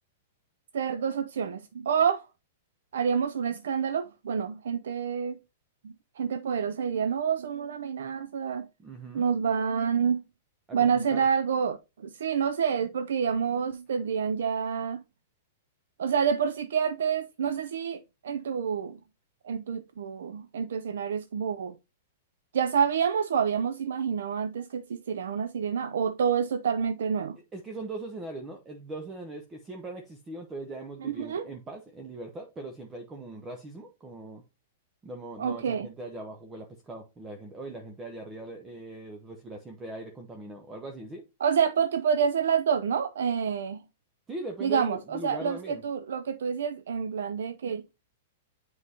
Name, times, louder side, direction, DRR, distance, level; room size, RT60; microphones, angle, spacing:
voice 1, 0.7-2.3 2.9-5.4 5.8-8.7 9.1-10.2 10.7-15.0 16.0-19.0 19.4-21.8 22.5-27.4 31.0-31.5 35.4-35.9 41.4-43.8 44.6-47.8, right 7 dB, 80° right, 0.5 m, -28 dB
voice 2, 8.8-9.3 10.7-10.8 11.1-11.2 27.5-34.4 35.0-41.2 44.3-45.8, right 2 dB, 15° right, 0.9 m, -40 dB
7.6 x 4.8 x 2.8 m
hypercardioid pair, 150°, 0 cm